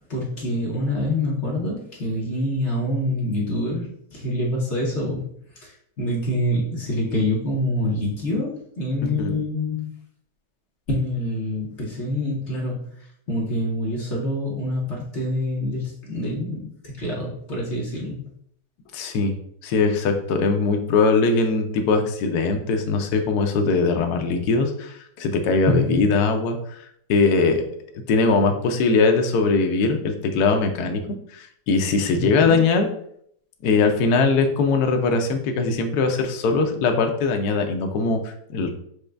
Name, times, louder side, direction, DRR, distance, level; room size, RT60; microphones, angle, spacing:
voice 1, 0.1-5.2 5.6-9.9 10.9-12.9 13.3-18.2 25.7-26.1 32.1-32.6, left 1 dB, 45° left, -3 dB, 1.0 m, -26 dB
voice 2, 18.9-19.3 19.6-27.6 28.1-31.0 31.3-32.9 33.6-38.7, left 4 dB, 70° left, 5 dB, 1.0 m, -21 dB
6.3 x 2.3 x 3.3 m, 0.68 s
omnidirectional pair, 2.2 m